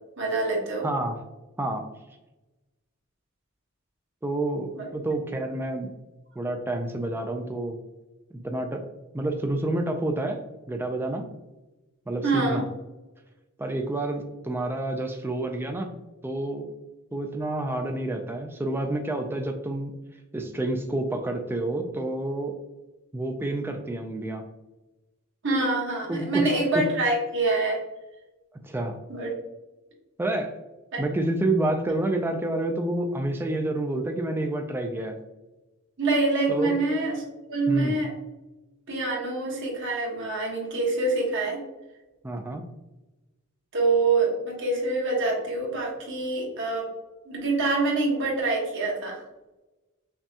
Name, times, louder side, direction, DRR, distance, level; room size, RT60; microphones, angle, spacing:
voice 1, 0.2-0.9 4.7-4.9 12.2-12.7 25.4-27.8 29.1-29.3 30.9-31.0 36.0-37.2 37.5-38.1 38.9-41.6 43.7-46.9 47.2-49.2, right 3 dB, 60° right, -2 dB, 1.2 m, -25 dB
voice 2, 0.8-1.2 1.6-1.8 4.2-5.9 6.4-7.8 8.3-8.8 9.1-10.4 10.7-11.2 12.1-12.6 13.6-15.9 16.2-16.7 17.1-19.9 20.3-22.5 23.1-24.4 26.1-26.5 26.7-26.8 28.6-29.0 30.2-30.5 31.0-35.2 36.5-36.8 37.7-38.0 42.2-42.7, right 1 dB, 10° right, 4 dB, 0.3 m, -28 dB
5.7 x 2.3 x 2.7 m, 1.0 s
head